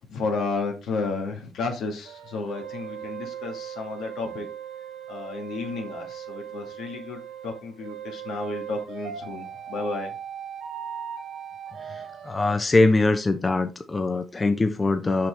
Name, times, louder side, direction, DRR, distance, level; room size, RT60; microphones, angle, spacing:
voice 1, 0.1-4.5 5.1-10.1, left 4 dB, 80° left, 3 dB, 2.0 m, -32 dB
sound 1, 2.0-12.6, right 9 dB, 85° right, 1.6 m, -38 dB
voice 2, 11.8-15.3, left 2 dB, 25° left, 7 dB, 0.7 m, -23 dB
5.8 x 5.8 x 3.4 m, 0.29 s
cardioid pair, 90°, 0 cm